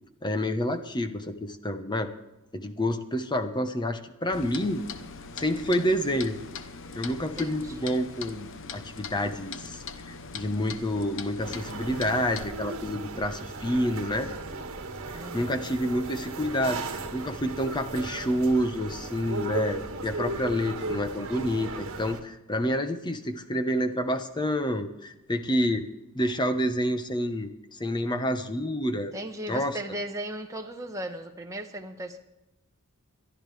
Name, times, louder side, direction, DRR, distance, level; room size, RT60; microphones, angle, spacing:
voice 1, 0.2-2.1 2.5-4.8 5.4-6.4 6.9-9.8 10.0-14.3 15.1-25.9 26.1-29.1 29.5-29.8, equal, 20° left, 8 dB, 1.0 m, -28 dB
Clock, 4.3-12.4, left 5 dB, 60° left, 0.9 m, -41 dB
voice 2, 7.2-8.0 15.1-15.7 29.1-32.2, right 1 dB, 15° right, 3 dB, 1.3 m, -37 dB
sound 1, 11.4-22.2, right 2 dB, 65° right, 1.7 m, -36 dB
22.0 x 12.5 x 3.4 m, 0.97 s
head